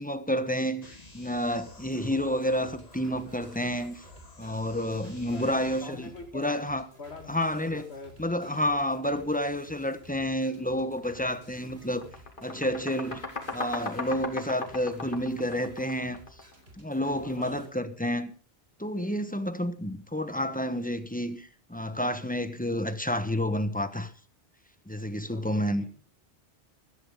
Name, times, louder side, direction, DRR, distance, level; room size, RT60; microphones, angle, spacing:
voice 1, 0.0-4.0 4.4-6.8 7.3-7.9 8.2-12.1 12.4-13.2 13.5-16.2 16.8-18.3 18.8-24.1 24.9-25.9, equal, 10° left, 1.2 m, -30 dB
sound 1, 0.8-5.8, left 2 dB, 40° left, 2.1 m, -51 dB
sound 2, 1.7-17.7, right 1 dB, 80° right, 3.7 m, -55 dB
voice 2, 5.3-6.7 7.0-8.6 17.2-17.7 25.3-25.9, left 3 dB, 85° left, 2.3 m, -45 dB
sound 3, 11.0-11.2 11.6-16.5, left 3 dB, 55° left, 2.6 m, -37 dB
15.5 x 14.5 x 3.7 m
omnidirectional pair, 1.1 m